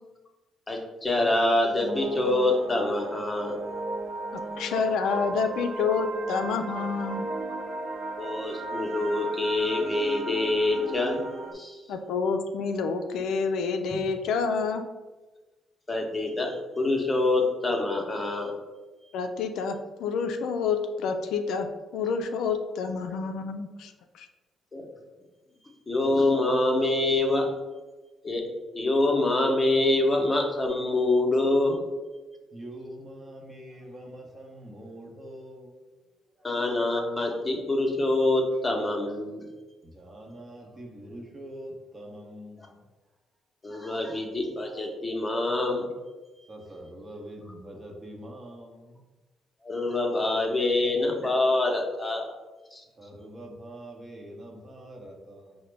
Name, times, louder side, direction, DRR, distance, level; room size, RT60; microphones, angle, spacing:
voice 1, 0.7-3.6 8.2-11.2 11.5-11.8 15.9-18.6 24.7-24.8 25.9-27.5 28.2-28.4 28.7-31.8 36.4-39.4 43.6-45.9 49.6-52.3 52.7-52.8, left 2 dB, 20° left, 1 dB, 0.8 m, -25 dB
sound 1, 1.8-11.5, right 2 dB, 60° right, 0.6 m, -35 dB
voice 2, 4.3-7.3 11.9-14.8 19.1-21.7 21.9-23.9 24.2-24.3, left 5 dB, 80° left, 6 dB, 0.3 m, -28 dB
voice 3, 32.5-35.7 39.8-42.8 46.5-49.0 53.0-55.6, right 1 dB, 30° right, 0 dB, 0.9 m, -44 dB
4.9 x 2.1 x 3.3 m, 1.2 s
cardioid pair, 90°, 0 cm